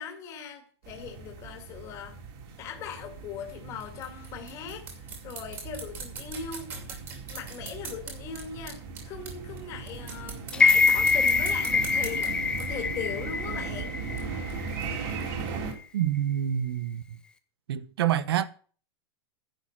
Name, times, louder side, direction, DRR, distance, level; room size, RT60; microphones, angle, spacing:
voice 1, 0.0-2.2 2.6-6.7 7.3-14.0, left 7 dB, 20° left, 2.2 m, -40 dB
sound 1, 0.8-15.7, right 5 dB, 40° right, 3.3 m, -38 dB
sound 2, 3.6-9.6 9.9-12.8 14.1-15.7, right 5 dB, 20° right, 2.5 m, -43 dB
sound 3, 10.5-14.7 15.1-15.2, left 4 dB, 5° left, 0.5 m, -24 dB
voice 2, 15.9-17.0 17.7-18.5, right 10 dB, 65° right, 1.1 m, -27 dB
10.5 x 8.8 x 6.0 m
supercardioid pair, 180°, 14 cm